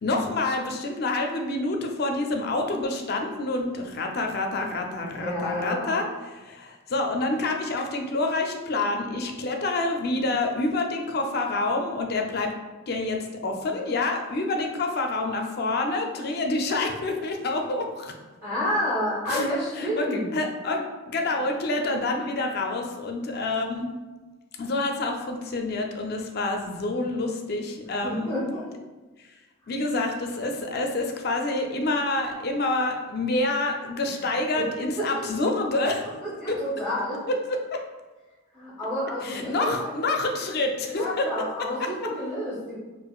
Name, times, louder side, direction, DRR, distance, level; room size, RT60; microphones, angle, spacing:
voice 1, 0.0-6.1 6.3-12.5 12.9-13.2 13.4-18.1 19.3-19.5 19.8-23.9 24.6-28.4 29.7-36.0 36.5-36.6 37.5-37.8 39.2-41.3, left 2 dB, 45° left, 3 dB, 0.4 m, -27 dB
voice 2, 5.2-5.9 18.4-20.3 28.0-28.6 34.5-34.6 35.0-35.1 36.0-37.2 38.5-39.9 40.8-42.8, equal, ahead, -8 dB, 0.7 m, -29 dB
4.7 x 2.5 x 2.3 m, 1.2 s
head